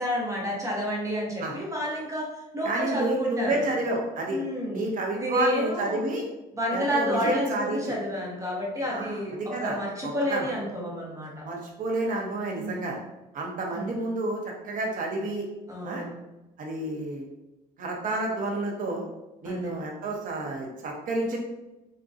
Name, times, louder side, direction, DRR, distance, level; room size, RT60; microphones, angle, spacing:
voice 1, 0.0-2.3 2.5-3.7 4.3-4.8 5.1-6.0 6.5-11.5 12.5-12.9 13.8-13.9 15.7-16.2 19.4-19.7, equal, 20° right, -3 dB, 0.8 m, -30 dB
voice 2, 2.6-4.4 4.7-6.3 6.7-7.9 8.9-10.5 11.4-13.0 13.3-15.5 15.8-16.0 16.6-17.2 17.8-19.1 19.4-21.4, right 2 dB, 50° right, 0 dB, 0.8 m, -30 dB
3.8 x 2.2 x 2.5 m, 0.98 s
cardioid pair, 110°, 17 cm